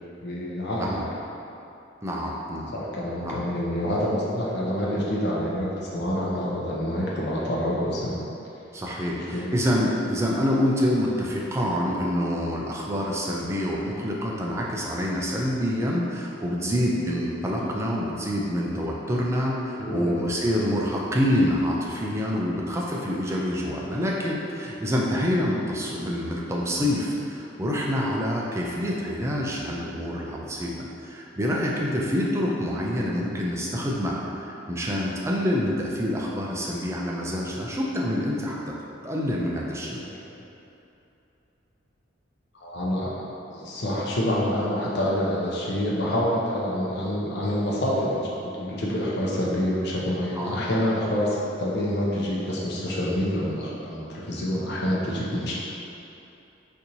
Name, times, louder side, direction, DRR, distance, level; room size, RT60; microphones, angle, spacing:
voice 1, 0.2-1.0 2.7-8.2 9.1-9.5 19.8-20.3 42.6-43.1 43.5-55.6, equal, 55° left, -6 dB, 0.7 m, -27 dB
voice 2, 2.0-2.7 3.2-3.4 8.7-38.6 39.0-40.0 50.4-50.6, equal, 15° right, -3 dB, 0.4 m, -26 dB
4.4 x 2.6 x 2.7 m, 2.9 s
head